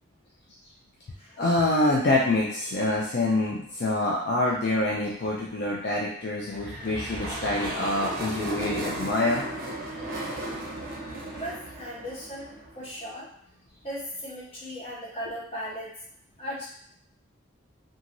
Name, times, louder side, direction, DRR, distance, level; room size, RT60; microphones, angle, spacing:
voice 1, 1.4-9.4, left 2 dB, 55° left, -4 dB, 0.4 m, -26 dB
sound 1, 6.5-12.9, right 1 dB, 45° right, 0.6 m, -35 dB
voice 2, 10.8-13.3 13.8-15.9 16.4-16.7, equal, 30° left, -6 dB, 0.9 m, -38 dB
2.9 x 2.4 x 2.5 m, 0.68 s
head